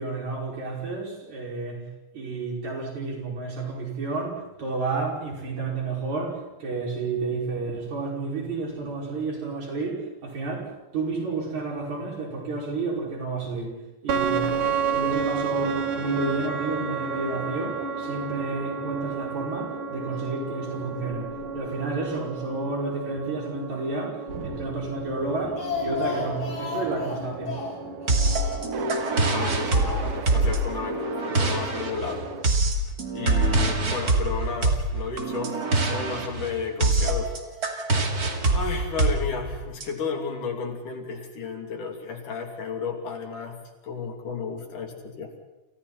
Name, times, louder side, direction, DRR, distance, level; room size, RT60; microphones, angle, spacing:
voice 1, 0.0-1.9 2.1-14.6 14.9-27.6, right 3 dB, 65° right, -2 dB, 7.0 m, -31 dB
sound 1, 14.1-32.4, right 5 dB, 85° right, 3.3 m, -32 dB
Speech, 25.3-28.8 29.2-30.3 30.6-30.7 31.0-31.1, left 4 dB, 50° left, 5.9 m, -34 dB
sound 2, 28.1-39.9, right 2 dB, 30° right, 2.7 m, -25 dB
voice 2, 29.1-32.3 33.1-37.3 38.5-45.3, left 5 dB, 85° left, 3 dB, 4.5 m, -33 dB
29.5 x 29.0 x 4.3 m, 1.0 s
omnidirectional pair, 3.5 m